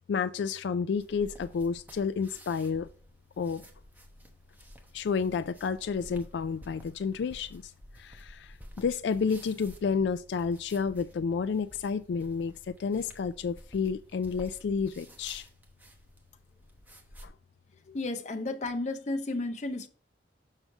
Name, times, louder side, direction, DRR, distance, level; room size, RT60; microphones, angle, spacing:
voice 1, 0.1-2.9 3.4-3.6 4.9-7.7 8.0-15.5 17.2-17.3, left 5 dB, 75° left, 0.3 m, -30 dB
sound 1, 1.0-17.3, equal, 10° right, 1.0 m, -52 dB
voice 2, 17.9-19.9, left 2 dB, 40° left, 0.8 m, -33 dB
6.5 x 6.3 x 3.5 m
head